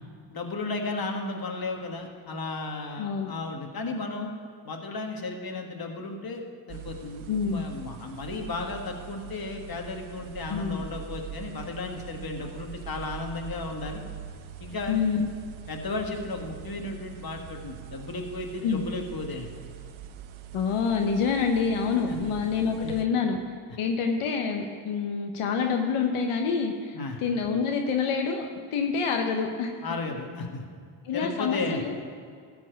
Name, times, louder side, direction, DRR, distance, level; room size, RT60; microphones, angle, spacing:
voice 1, 0.3-4.3 4.6-6.4 6.7-14.0 14.6-15.0 15.7-19.5 22.1-22.2 22.8-22.9 26.9-27.2 29.8-30.6 31.1-31.8, left 3 dB, 45° left, 3 dB, 1.6 m, -34 dB
voice 2, 3.0-3.3 7.3-7.6 10.5-10.8 14.9-15.3 18.6-18.8 20.5-23.4 23.8-28.5 28.7-29.7 31.0-32.0, left 5 dB, 85° left, 3 dB, 1.0 m, -27 dB
sound 1, 6.7-23.1, right 10 dB, 70° right, 0.8 m, -43 dB
13.5 x 4.6 x 7.8 m, 2.2 s
cardioid pair, 65°, 49 cm